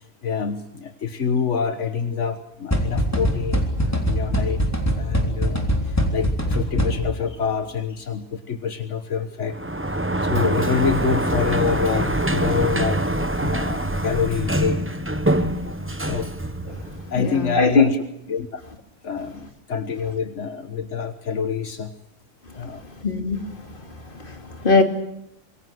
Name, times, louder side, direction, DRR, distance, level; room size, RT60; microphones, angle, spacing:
voice 1, 0.0-4.6 4.9-9.6 9.9-13.0 13.3-14.8 16.0-16.3 17.1-18.0 18.3-18.6 19.0-21.9 22.5-22.8, left 6 dB, 75° left, 9 dB, 1.6 m, -26 dB
sound 1, 2.7-7.3, equal, 15° left, 3.5 m, -23 dB
Sliding door, 9.5-17.3, right 1 dB, 10° right, 1.1 m, -24 dB
voice 2, 17.2-17.9 23.0-23.4 24.2-24.8, left 4 dB, 45° left, 5 dB, 2.9 m, -19 dB
25.5 x 23.0 x 7.7 m, 0.81 s
omnidirectional pair, 1.2 m